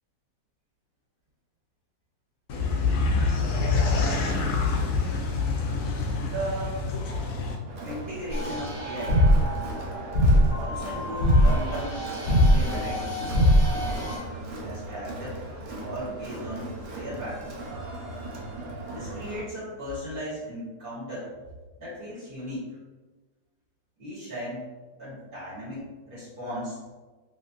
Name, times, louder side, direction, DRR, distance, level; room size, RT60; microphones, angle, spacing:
sound 1, 2.5-7.6, left 4 dB, 80° left, 0.7 m, -26 dB
voice 1, 6.2-6.9 7.8-9.3 10.5-13.2 14.6-17.6 18.9-21.3 21.8-22.8 24.0-24.7 25.0-26.8, equal, 35° right, -9 dB, 1.1 m, -36 dB
Crowd, 7.7-19.4, right 2 dB, 75° right, 0.6 m, -38 dB
sound 2, 8.3-14.2, equal, 40° left, 0.9 m, -22 dB
3.1 x 2.8 x 2.7 m, 1.3 s
omnidirectional pair, 1.9 m